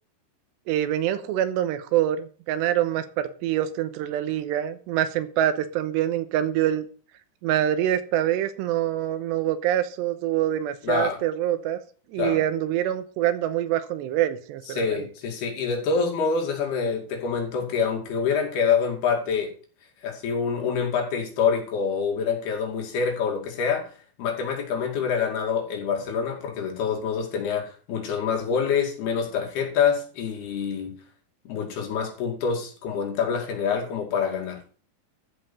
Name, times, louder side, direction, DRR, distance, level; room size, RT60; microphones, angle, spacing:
voice 1, 0.7-6.9 7.4-11.8 12.1-15.1, right 12 dB, 90° right, 3.2 m, -25 dB
voice 2, 10.8-11.2 12.2-12.4 14.7-19.5 20.0-23.9 24.2-31.0 31.5-34.6, left 6 dB, 70° left, 4.2 m, -26 dB
13.0 x 5.5 x 6.9 m
omnidirectional pair, 4.8 m